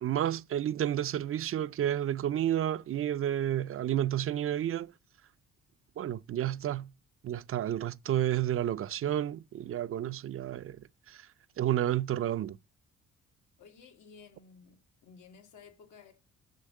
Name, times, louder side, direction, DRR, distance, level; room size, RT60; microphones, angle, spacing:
voice 1, 0.0-4.9 6.0-6.9 7.2-11.3 11.6-12.6, right 11 dB, 45° right, 0.4 m, -31 dB
voice 2, 13.6-14.8 15.0-16.1, left 6 dB, 80° left, 1.9 m, -54 dB
6.5 x 6.3 x 7.4 m
cardioid pair, 90°, 30 cm